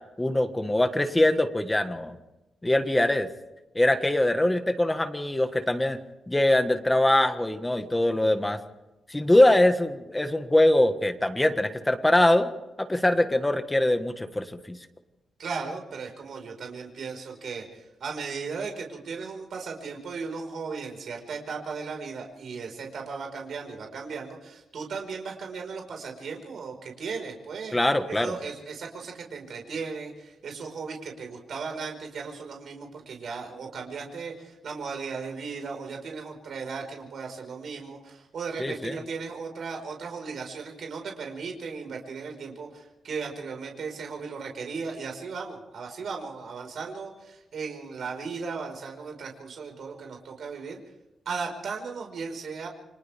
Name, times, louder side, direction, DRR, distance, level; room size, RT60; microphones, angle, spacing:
voice 1, 0.2-2.1 2.6-3.3 3.7-6.0 6.3-8.6 9.1-12.5 12.8-14.8 27.7-28.4 38.6-39.0, left 1 dB, 10° left, 7 dB, 1.5 m, -23 dB
voice 2, 15.4-27.8 28.1-50.8 51.2-52.7, right 5 dB, 65° right, 2 dB, 4.9 m, -36 dB
29.5 x 26.0 x 3.5 m, 0.96 s
wide cardioid pair, 155°, 0 cm